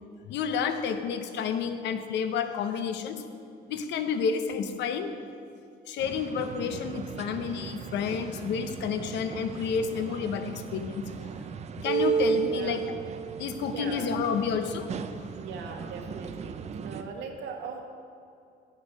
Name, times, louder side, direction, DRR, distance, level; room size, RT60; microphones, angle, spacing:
voice 1, 0.3-3.2 3.7-5.1 5.9-11.3 11.8-12.8 13.4-14.9, left 6 dB, 75° left, 8 dB, 0.9 m, -30 dB
sound 1, 6.0-17.0, right 7 dB, 35° right, 0.5 m, -35 dB
voice 2, 12.5-12.9 13.7-14.1 15.3-16.5 16.8-17.8, right 5 dB, 85° right, 2 dB, 1.4 m, -39 dB
9.5 x 8.5 x 5.5 m, 2.5 s
cardioid pair, 135°, 18 cm